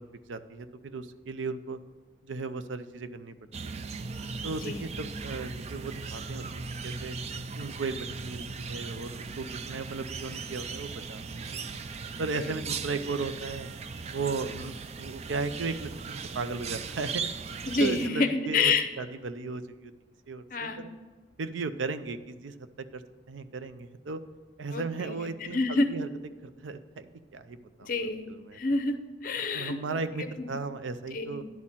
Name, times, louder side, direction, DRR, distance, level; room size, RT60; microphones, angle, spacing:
voice 1, 0.0-1.8 2.2-3.3 3.6-3.9 4.4-7.2 7.5-11.6 12.2-13.7 14.1-17.4 17.8-19.9 20.3-20.9 21.4-23.0 23.3-24.2 24.6-26.1 26.6-27.0 27.3-27.9 28.3-28.6 29.5-31.4, right 4 dB, 85° right, 11 dB, 0.5 m, -36 dB
sound 1, 3.5-18.1, right 5 dB, 35° right, 0.3 m, -38 dB
voice 2, 4.5-4.8 12.4-12.5 17.7-18.9 20.5-20.8 24.7-25.2 25.5-25.9 27.8-28.3 28.5-30.5 31.1-31.4, left 3 dB, 45° left, 7 dB, 0.7 m, -28 dB
10.5 x 4.2 x 7.3 m, 1.4 s
head